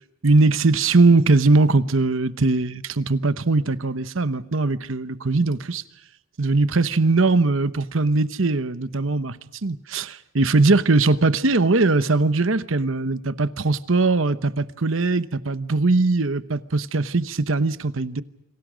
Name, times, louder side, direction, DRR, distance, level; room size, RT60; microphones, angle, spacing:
voice 1, 0.2-5.8 6.4-9.4 9.6-18.2, right 3 dB, 65° right, 1.0 m, -20 dB
29.0 x 26.0 x 5.1 m
head